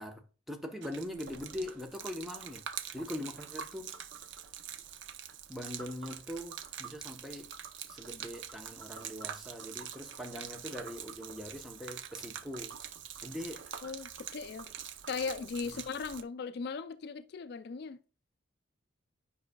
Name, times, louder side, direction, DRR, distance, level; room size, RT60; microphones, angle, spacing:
voice 1, 0.0-2.6 2.9-4.0 5.5-7.5 7.9-12.8 13.2-13.6 15.7-15.8, left 1 dB, ahead, 0.7 m, -42 dB
Gurgling / Liquid, 0.8-16.2, right 8 dB, 60° right, 0.6 m, -45 dB
voice 2, 13.8-14.7 15.1-18.0, left 5 dB, 55° left, 0.3 m, -38 dB
9.4 x 5.4 x 2.2 m
head